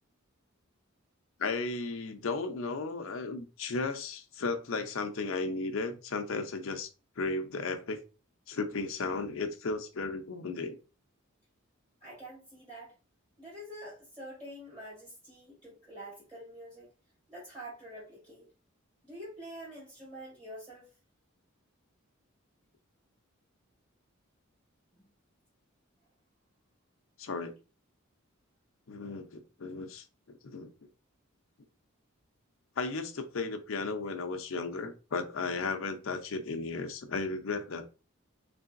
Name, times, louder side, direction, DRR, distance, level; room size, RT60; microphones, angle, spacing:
voice 1, 1.4-6.9 7.2-8.0 8.5-10.8 27.2-27.6 28.9-30.7 32.8-37.8, left 3 dB, 70° left, 0.6 m, -35 dB
voice 2, 12.0-12.9 13.4-16.9 17.3-18.5 19.0-20.9 24.9-25.1, right 1 dB, 20° right, 2.2 m, -46 dB
3.8 x 3.3 x 2.5 m
head